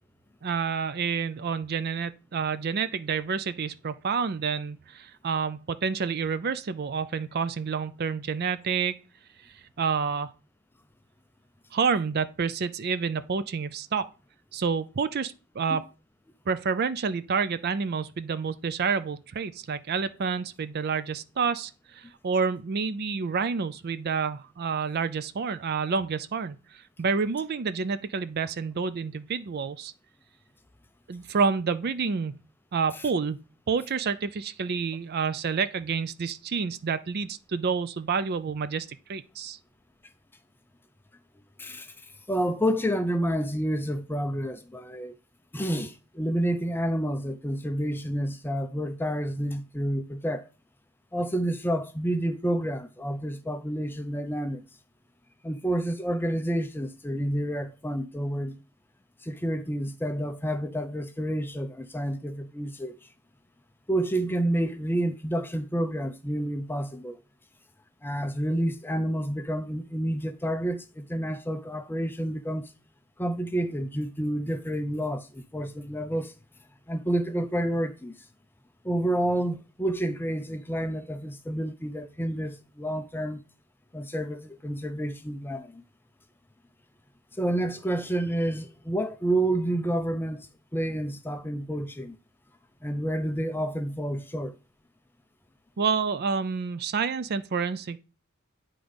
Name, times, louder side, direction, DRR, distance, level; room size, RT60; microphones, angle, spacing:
voice 1, 0.4-9.0 9.4-10.3 11.7-14.1 14.5-15.9 16.5-29.9 31.1-32.4 32.7-39.6 95.8-98.0, right 5 dB, 45° right, 0.4 m, -29 dB
voice 2, 41.6-45.1 45.5-50.5 51.1-54.7 55.4-58.6 59.2-63.1 63.9-67.2 68.0-72.7 73.2-76.3 76.9-78.3 78.8-83.4 83.9-85.8 87.3-92.2 92.8-94.5, right 1 dB, 10° left, 0.5 m, -29 dB
9.6 x 3.8 x 5.2 m
head